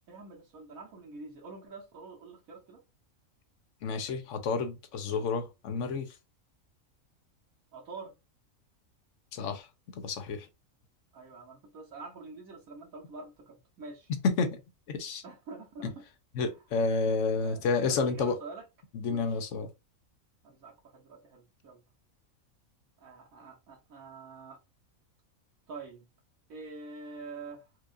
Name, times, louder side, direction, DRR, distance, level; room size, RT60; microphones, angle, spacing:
voice 1, 0.1-2.8 7.7-8.1 11.1-14.1 15.2-16.0 16.4-16.6 17.4-17.6 17.9-18.6 19.1-19.4 20.4-21.8 23.0-24.6 25.7-26.1 26.5-27.7, right 3 dB, 80° right, 1.4 m, -46 dB
voice 2, 3.8-6.1 9.3-9.7 10.0-10.5 14.2-14.6 14.9-15.2 15.8-15.9 16.4-18.4 18.9-19.7, left 4 dB, 70° left, 0.9 m, -30 dB
4.5 x 2.4 x 2.5 m
omnidirectional pair, 1.4 m